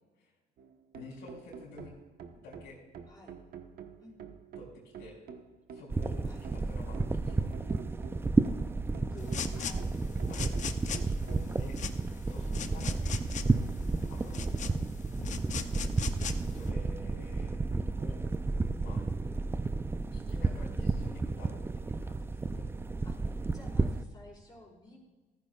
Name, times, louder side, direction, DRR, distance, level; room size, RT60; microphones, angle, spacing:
sound 1, 0.6-11.5, right 6 dB, 60° right, 1.1 m, -49 dB
voice 1, 0.9-1.9 2.3-2.8 4.5-5.2 5.7-6.2 6.5-7.8 10.3-10.5 10.9-11.8 12.2-13.3 14.0-14.7 16.5-17.6 18.0-18.2 18.8-19.0 20.1-22.7, left 2 dB, 90° left, -8 dB, 3.7 m, -50 dB
voice 2, 3.1-3.4 4.0-4.2 6.2-6.4 9.1-9.9 19.2-19.3 23.0-25.0, left 1 dB, 25° left, -4 dB, 4.5 m, -53 dB
sound 2, 5.9-24.0, right 3 dB, 15° right, 0.4 m, -32 dB
sound 3, 9.2-16.7, left 8 dB, 45° left, 0.7 m, -41 dB
14.5 x 14.5 x 2.4 m, 1.2 s
cardioid pair, 110°, 17 cm